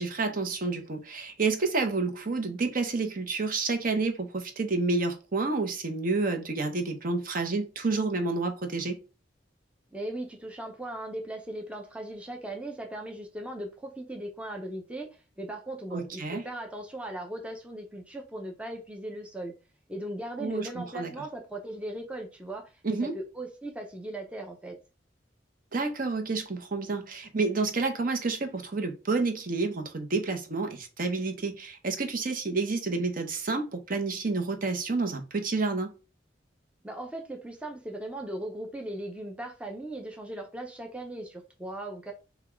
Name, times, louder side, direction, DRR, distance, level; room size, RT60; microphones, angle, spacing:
voice 1, 0.0-9.0 15.9-16.4 20.4-21.1 22.8-23.1 25.7-35.9, right 3 dB, 50° right, 0.8 m, -29 dB
voice 2, 9.9-15.1 15.4-19.5 19.9-24.8 36.8-42.1, right 1 dB, 5° right, 0.6 m, -38 dB
4.0 x 2.3 x 4.4 m
head